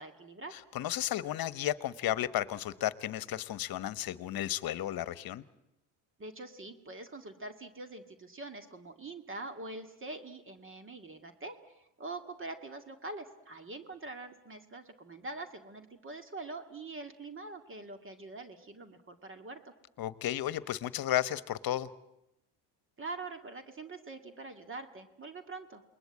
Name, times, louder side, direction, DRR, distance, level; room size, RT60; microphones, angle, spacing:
voice 1, 0.0-0.6 6.2-19.6 23.0-25.8, right 2 dB, 25° right, 8 dB, 2.1 m, -44 dB
voice 2, 0.7-5.4 20.0-21.9, left 13 dB, 50° left, 15 dB, 1.3 m, -33 dB
28.5 x 21.0 x 8.8 m, 0.88 s
cardioid pair, 110°, 46 cm